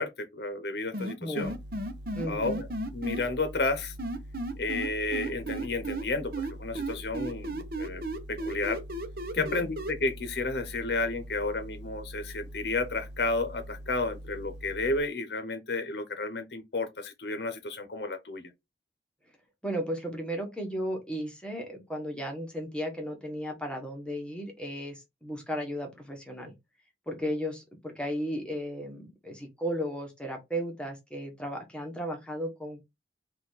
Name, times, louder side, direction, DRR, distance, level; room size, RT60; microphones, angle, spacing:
voice 1, 0.0-1.5 2.3-2.7 2.9-3.9 4.6-8.0 8.3-8.8 9.3-18.5, left 3 dB, 70° left, 0.8 m, -32 dB
sound 1, 0.9-3.2 4.0-6.0 6.3-9.9, right 2 dB, 55° right, 0.8 m, -34 dB
voice 2, 1.2-1.5 2.1-2.6 9.4-9.6 19.6-26.5 27.1-32.8, equal, 5° left, 1.1 m, -35 dB
sound 2, 1.4-15.0, equal, 85° right, 1.0 m, -44 dB
4.3 x 2.5 x 3.9 m
head